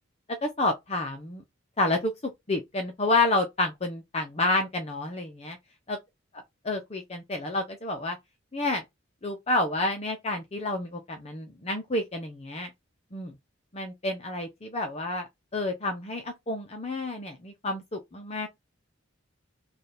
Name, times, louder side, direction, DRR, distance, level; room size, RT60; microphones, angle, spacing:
voice 1, 0.4-1.4 1.8-5.6 5.9-6.0 6.6-8.2 8.5-8.8 9.2-12.7 13.1-13.3 13.7-18.5, left 2 dB, 30° left, 0.7 m, -29 dB
3.4 x 2.4 x 4.2 m
head